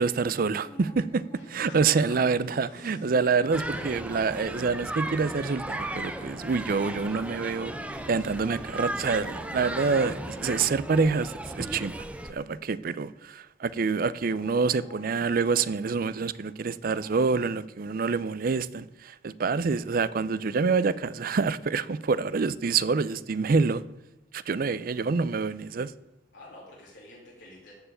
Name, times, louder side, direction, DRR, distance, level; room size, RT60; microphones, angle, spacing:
voice 1, 0.0-7.7 8.1-11.9 12.3-23.8 24.3-25.9, right 4 dB, 50° right, 0.4 m, -27 dB
sound 1, 0.6-13.1 14.3-17.3, left 1 dB, 30° left, 2.6 m, -53 dB
sound 2, 1.3-10.8, left 1 dB, 90° left, 3.4 m, -50 dB
voice 2, 1.6-2.2 2.5-3.1 3.6-4.0 24.6-24.7 26.3-27.7, left 2 dB, 75° left, 2.6 m, -48 dB
sound 3, 3.5-12.3, right 1 dB, 5° right, 0.6 m, -36 dB
13.5 x 4.7 x 8.9 m
head